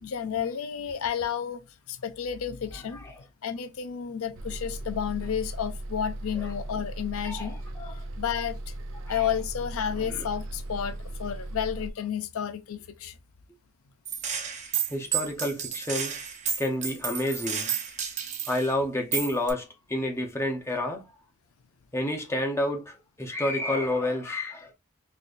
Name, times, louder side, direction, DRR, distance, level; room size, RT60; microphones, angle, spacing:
voice 1, 0.0-3.0 3.4-7.6 8.2-8.7 9.1-13.2, left 8 dB, 80° left, 0.5 m, -31 dB
Bus, 4.3-11.9, right 1 dB, 80° right, 0.6 m, -37 dB
voice 2, 7.2-7.9 9.1-9.3 10.0-10.3 14.9-16.1 16.6-17.7 18.5-21.1 21.9-24.7, left 1 dB, 10° left, 0.8 m, -30 dB
Gunshot gunfire, 14.1-18.7 19.1-19.5, right 7 dB, 35° right, 0.7 m, -31 dB
4.1 x 3.2 x 2.5 m
head